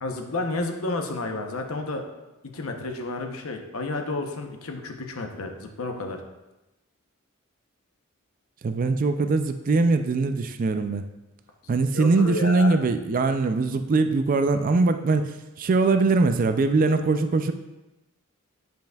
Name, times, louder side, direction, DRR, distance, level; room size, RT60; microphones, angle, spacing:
voice 1, 0.0-2.1 2.4-6.2 11.9-12.8, left 2 dB, 80° left, 4 dB, 0.8 m, -31 dB
voice 2, 8.6-11.0 11.7-15.3 15.6-17.5, right 3 dB, 40° right, 8 dB, 0.4 m, -22 dB
10.5 x 5.3 x 2.3 m, 1.0 s
head